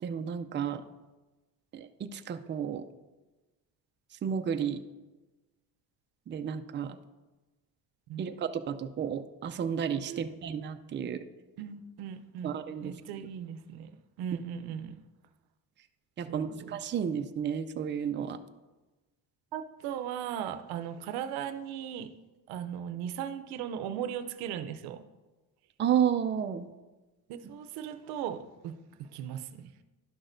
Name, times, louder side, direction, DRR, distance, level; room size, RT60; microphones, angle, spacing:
voice 1, 0.0-0.8 1.7-2.8 4.2-4.8 6.3-7.0 8.2-11.2 12.4-12.9 16.2-18.4 25.8-26.7, right 8 dB, 30° right, 9 dB, 0.5 m, -32 dB
voice 2, 10.1-10.5 11.6-12.5 12.8-13.9 14.2-15.0 16.3-16.8 19.5-22.1 22.5-25.0 27.3-29.7, right 9 dB, 90° right, 11 dB, 0.6 m, -38 dB
11.5 x 6.1 x 2.6 m, 1.1 s
cardioid pair, 105°, 37 cm